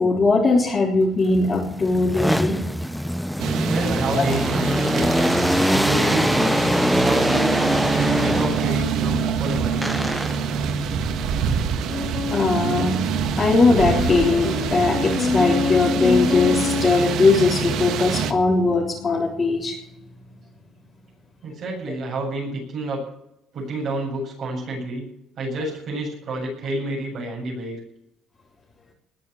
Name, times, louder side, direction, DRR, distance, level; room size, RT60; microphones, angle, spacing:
voice 1, 0.0-2.6 4.1-4.3 12.3-19.8, left 3 dB, 30° left, -5 dB, 3.7 m, -20 dB
sound 1, 1.3-8.9 9.8-10.6 13.8-14.6 15.1-17.4, equal, ahead, 0.5 m, -24 dB
sound 2, 3.4-18.3, right 6 dB, 65° right, 1.5 m, -26 dB
voice 2, 3.7-5.4 5.7-6.5 7.0-7.6 8.0-9.8 12.2-12.3 21.4-23.0 23.5-25.1 25.4-27.8, right 2 dB, 50° right, -2 dB, 7.5 m, -29 dB
sound 3, 11.9-12.9 13.9-16.9, left 4 dB, 50° left, 3.6 m, -25 dB
20.5 x 7.0 x 8.8 m, 0.79 s
cardioid pair, 140°, 0 cm